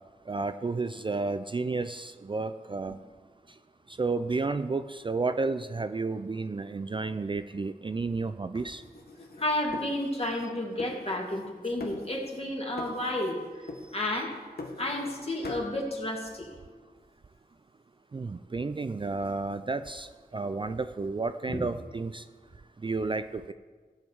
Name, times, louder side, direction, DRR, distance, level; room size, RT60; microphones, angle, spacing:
voice 1, 0.3-3.0 3.9-8.8 18.1-22.3 22.8-23.5, right 3 dB, 30° right, 0.4 m, -32 dB
sound 1, 8.5-10.5 10.8-11.5 11.8-12.5 12.8-13.4 13.7-15.2 15.4-15.7, left 2 dB, 85° left, 1.4 m, -42 dB
voice 2, 9.4-13.6 13.9-14.3 14.8-16.5 21.5-21.6, left 1 dB, 40° left, 2.4 m, -31 dB
14.0 x 7.3 x 4.7 m
wide cardioid pair, 70°, 16 cm